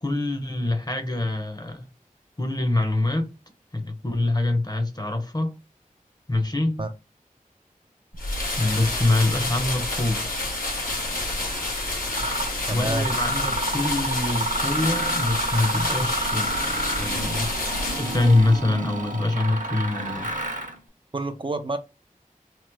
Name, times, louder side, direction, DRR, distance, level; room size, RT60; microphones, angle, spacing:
voice 1, 0.0-1.9 2.4-3.3 3.7-5.6 6.3-6.8 8.6-10.3 12.7-16.5 17.0-17.5 18.0-20.3, left 2 dB, 25° left, 0.7 m, -24 dB
sound 1, 8.1-18.6, left 2 dB, 80° left, 1.1 m, -29 dB
Mechanisms, 11.5-11.6 12.1-12.5 13.0-20.8, right 1 dB, 65° right, 0.8 m, -30 dB
voice 2, 12.7-13.1 21.1-21.8, right 2 dB, 35° right, 0.4 m, -27 dB
3.0 x 2.0 x 3.3 m
wide cardioid pair, 40°, 14 cm